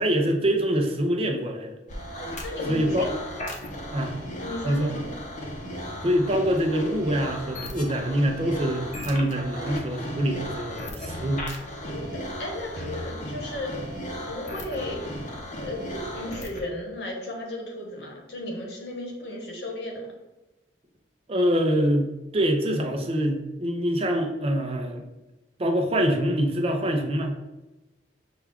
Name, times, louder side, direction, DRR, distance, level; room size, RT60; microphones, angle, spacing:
voice 1, 0.0-1.8 2.7-3.1 3.9-4.1 4.6-5.0 6.0-11.5 21.3-25.0 25.6-27.3, equal, 35° right, 3 dB, 0.5 m, -25 dB
sound 1, 1.9-16.7, equal, 45° left, 0.7 m, -35 dB
voice 2, 2.4-3.1 4.4-5.0 11.8-13.7 14.3-15.0 15.6-20.1, left 1 dB, 70° left, 0 dB, 1.2 m, -35 dB
5.9 x 2.3 x 3.5 m, 1.0 s
head